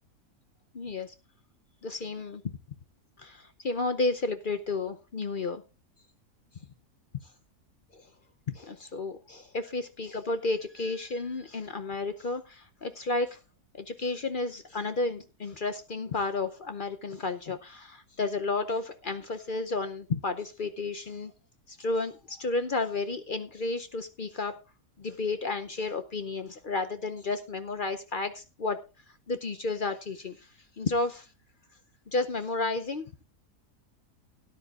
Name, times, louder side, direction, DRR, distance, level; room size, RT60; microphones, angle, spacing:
voice 1, 0.7-1.1 1.8-2.4 3.2-5.6 8.0-8.1 8.5-13.4 13.7-21.3 21.7-24.6 25.0-28.8 29.3-30.5 30.8-31.3 32.1-33.1, left 3 dB, 50° left, 0.6 m, -32 dB
17.5 x 10.0 x 2.4 m
omnidirectional pair, 1.6 m